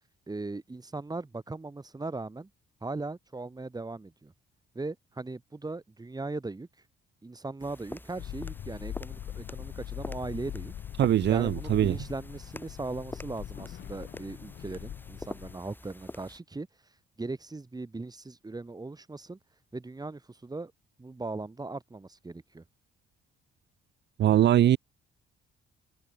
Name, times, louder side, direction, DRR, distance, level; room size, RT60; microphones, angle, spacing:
voice 1, 0.3-2.5 2.8-4.3 4.7-6.7 7.2-10.7 11.3-16.7 17.2-19.4 19.7-20.7 21.0-22.6, right 3 dB, 20° right, 3.8 m, -38 dB
sound 1, 7.6-16.4, left 1 dB, 10° left, 7.4 m, -46 dB
sound 2, 8.2-15.6, left 11 dB, 65° left, 1.1 m, -41 dB
voice 2, 11.0-11.9 24.2-24.8, right 12 dB, 60° right, 0.7 m, -22 dB
open air
cardioid pair, 90°, 20 cm